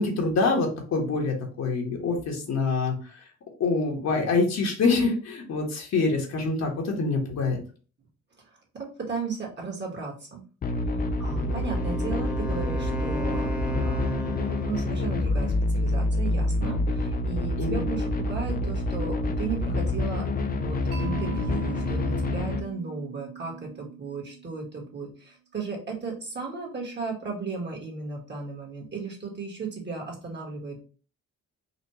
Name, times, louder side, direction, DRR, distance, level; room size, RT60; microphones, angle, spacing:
voice 1, 0.0-3.2 3.6-7.6 17.6-17.8, left 3 dB, 60° left, 0 dB, 1.4 m, -25 dB
voice 2, 8.7-10.4 11.0-14.3 14.7-30.8, right 4 dB, 35° right, -1 dB, 1.6 m, -35 dB
sound 1, 10.6-22.6, left 2 dB, 30° left, 0.5 m, -27 dB
Wind instrument woodwind instrument, 11.2-15.0, right 1 dB, 5° right, 0.8 m, -36 dB
Mallet percussion, 20.9-24.9, right 13 dB, 85° right, 0.9 m, -40 dB
4.2 x 2.5 x 3.1 m, 0.37 s
cardioid pair, 90°, 30 cm